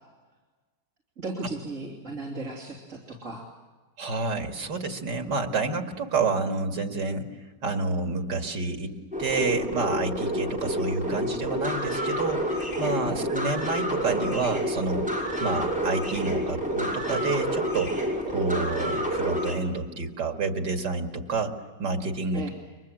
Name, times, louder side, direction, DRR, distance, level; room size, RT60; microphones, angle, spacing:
voice 1, 1.2-3.5 13.1-13.3 22.3-22.5, right 2 dB, 45° right, -2 dB, 3.5 m, -36 dB
voice 2, 4.0-7.2 7.6-8.9 9.2-15.1 15.4-17.9 18.3-21.5 21.8-22.5, right 3 dB, 85° right, 4 dB, 2.8 m, -29 dB
sound 1, 9.1-19.6, equal, 5° right, 6.2 m, -28 dB
30.0 x 24.0 x 7.6 m, 1.3 s
omnidirectional pair, 1.8 m